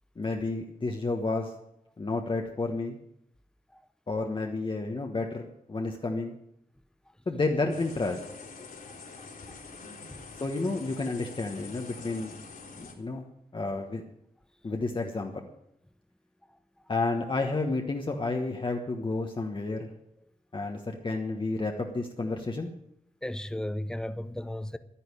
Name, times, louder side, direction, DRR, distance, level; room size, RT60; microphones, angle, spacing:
voice 1, 0.2-1.5 2.0-3.0 4.1-6.4 7.3-8.2 10.4-12.4 12.8-13.3 13.5-14.0 14.6-15.5 16.9-19.9 20.5-22.7, left 3 dB, 35° left, 1.3 m, -31 dB
sound 1, 7.7-12.9, left 4 dB, 70° left, 3.6 m, -45 dB
voice 2, 8.9-9.6 23.2-24.8, left 1 dB, 5° left, 0.7 m, -36 dB
11.5 x 10.0 x 9.8 m
wide cardioid pair, 140°, 15 cm